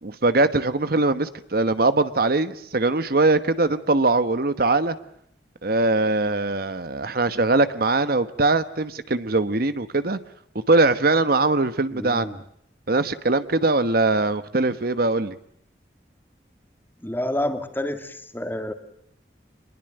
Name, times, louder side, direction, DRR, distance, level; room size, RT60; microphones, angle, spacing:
voice 1, 0.0-5.0 5.6-10.2 10.7-12.4 12.9-15.4, right 2 dB, 55° right, 12 dB, 1.1 m, -21 dB
voice 2, 11.9-12.4 17.0-18.7, left 1 dB, 10° left, 8 dB, 2.2 m, -29 dB
27.0 x 21.5 x 7.8 m, 0.68 s
head